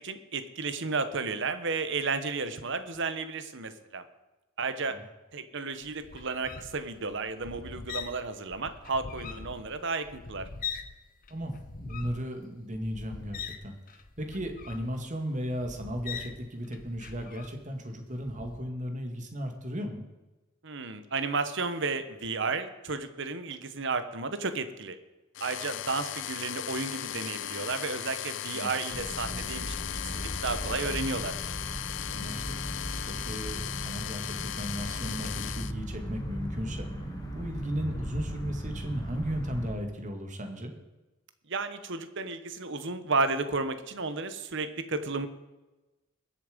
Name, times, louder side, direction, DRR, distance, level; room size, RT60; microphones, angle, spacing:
voice 1, 0.0-4.0 4.6-5.0 5.3-10.5 20.6-25.0 25.4-31.4 41.5-45.3, right 4 dB, 60° right, 10 dB, 1.2 m, -33 dB
sound 1, 5.8-11.0 11.2-17.8 18.2-18.6, left 6 dB, 45° left, 0.9 m, -42 dB
voice 2, 11.3-13.8 14.2-20.0 28.5-28.7 32.1-32.4 33.1-36.9 37.3-40.7, equal, 35° right, 5 dB, 2.1 m, -36 dB
sound 2, 25.3-35.7, left 11 dB, 60° left, 0.5 m, -37 dB
sound 3, 28.9-39.7, equal, 20° left, 2.1 m, -37 dB
21.5 x 7.4 x 5.2 m, 1.1 s
head